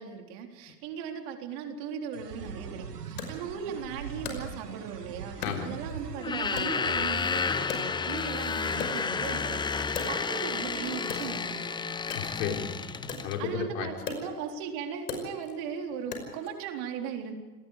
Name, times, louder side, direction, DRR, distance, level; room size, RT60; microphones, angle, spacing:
voice 1, 0.0-11.9 13.4-17.3, right 7 dB, 50° right, 3 dB, 3.9 m, -38 dB
sound 1, 2.1-7.1, right 6 dB, 80° right, 1.7 m, -41 dB
Wood, 3.2-5.0 5.4-6.2 6.6-8.4 8.7-10.6 11.0-16.6, left 5 dB, 70° left, 5.6 m, -40 dB
voice 2, 5.4-5.7 12.1-13.9, left 7 dB, 55° left, 3 dB, 4.1 m, -34 dB
sound 2, 6.2-13.4, left 5 dB, 10° left, 0.8 m, -31 dB
27.5 x 20.0 x 5.0 m, 1.3 s
figure-of-eight pair, 95°, 47 cm